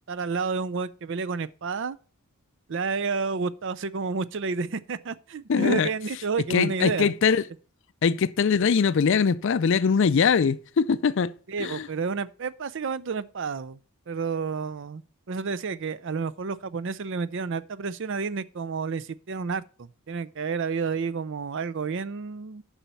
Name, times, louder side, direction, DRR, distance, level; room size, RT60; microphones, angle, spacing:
voice 1, 0.1-2.0 2.7-7.1 11.5-13.8 14.1-15.0 15.3-22.6, right 5 dB, 55° right, 0.5 m, -30 dB
voice 2, 5.5-5.9 6.5-7.4 8.0-11.3 11.6-11.9, left 6 dB, 55° left, 0.4 m, -22 dB
7.2 x 5.5 x 6.9 m
head